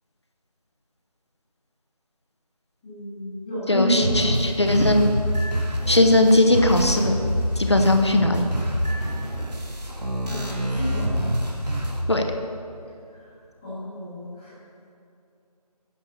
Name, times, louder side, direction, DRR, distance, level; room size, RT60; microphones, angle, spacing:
voice 1, 2.8-4.2 10.3-11.0 13.2-13.3 13.6-14.5, equal, 5° left, -17 dB, 1.2 m, -29 dB
voice 2, 3.7-5.0 5.9-7.1 7.6-8.4 12.1-12.2, left 1 dB, 45° left, 4 dB, 0.8 m, -19 dB
sound 1, 4.0-12.0, equal, 80° right, 2.2 m, -26 dB
9.8 x 6.5 x 6.6 m, 2.6 s
figure-of-eight pair, 175°, 20 cm